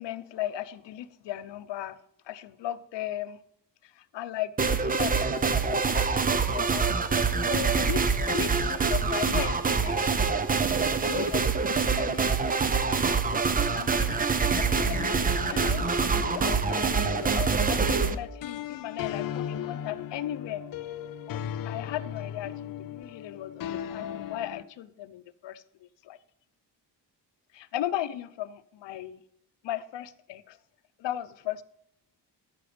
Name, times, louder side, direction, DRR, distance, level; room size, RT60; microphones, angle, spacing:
voice 1, 0.0-2.0 2.3-3.4 3.8-6.8 7.1-10.7 11.0-13.0 13.3-13.4 13.7-14.2 14.5-20.6 21.3-21.4 21.6-26.2 27.5-29.2 29.6-30.6 31.0-31.6, left 12 dB, 85° left, 12 dB, 0.7 m, -37 dB
sound 1, 4.6-18.1, right 5 dB, 20° right, 0.5 m, -25 dB
sound 2, 14.8-24.6, left 10 dB, 55° left, 0.5 m, -37 dB
13.5 x 6.1 x 5.1 m, 0.75 s
wide cardioid pair, 170°, 42 cm